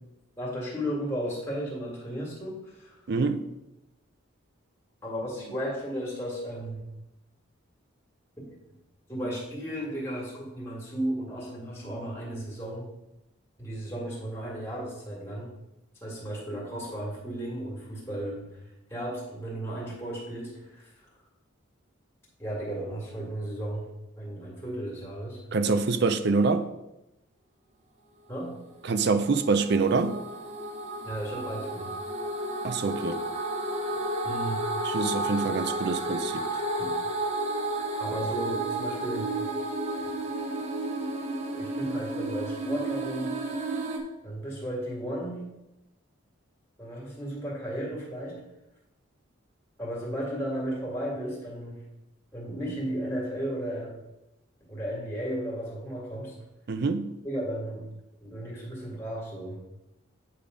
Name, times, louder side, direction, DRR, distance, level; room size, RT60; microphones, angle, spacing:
voice 1, 0.4-3.0 5.0-6.8 8.4-8.5 9.1-12.9 13.6-15.5 16.0-18.6 18.9-21.1 22.4-23.9 24.2-25.4 28.3-28.6 31.0-31.9 34.2-34.6 36.8-37.0 38.0-39.3 41.5-43.4 44.2-45.4 46.8-48.4 49.8-51.8 52.3-54.0 54.7-56.4 57.2-57.9 58.2-59.6, right 1 dB, 10° left, 2.1 m, -34 dB
voice 2, 3.1-3.4 25.5-26.7 28.8-30.2 32.6-33.2 34.8-36.5 56.7-57.1, right 4 dB, 50° right, 0.5 m, -25 dB
sound 1, 28.9-44.0, right 2 dB, 35° right, 0.8 m, -32 dB
8.7 x 3.4 x 5.1 m
head